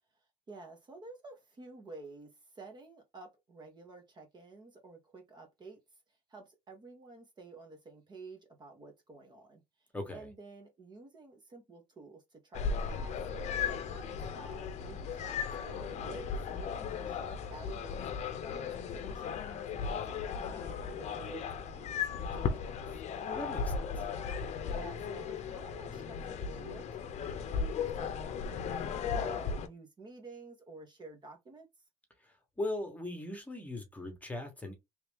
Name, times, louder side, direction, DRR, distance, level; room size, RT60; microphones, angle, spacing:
voice 1, 0.5-5.8 6.1-23.0 24.5-31.7, right 3 dB, 30° right, 1.2 m, -51 dB
voice 2, 9.9-10.3 23.3-24.0 32.2-34.7, left 1 dB, 10° left, 1.3 m, -39 dB
sound 1, 12.5-29.7, left 6 dB, 55° left, 0.7 m, -36 dB
3.2 x 2.8 x 3.4 m
cardioid pair, 135°, 14 cm